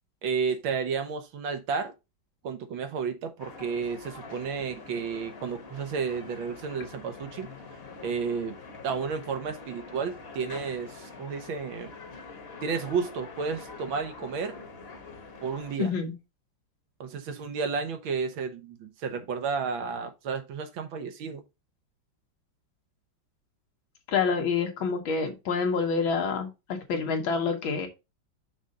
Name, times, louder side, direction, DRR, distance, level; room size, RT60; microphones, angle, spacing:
voice 1, 0.2-1.9 2.4-7.5 8.0-8.6 8.8-11.9 12.6-14.7 15.4-15.9 17.0-21.4, right 5 dB, 90° right, 1.8 m, -32 dB
sound 1, 3.4-15.8, left 4 dB, 40° left, 1.0 m, -45 dB
voice 2, 15.8-16.1 24.1-27.9, left 5 dB, 85° left, 2.0 m, -27 dB
6.2 x 3.7 x 5.3 m
omnidirectional pair, 2.1 m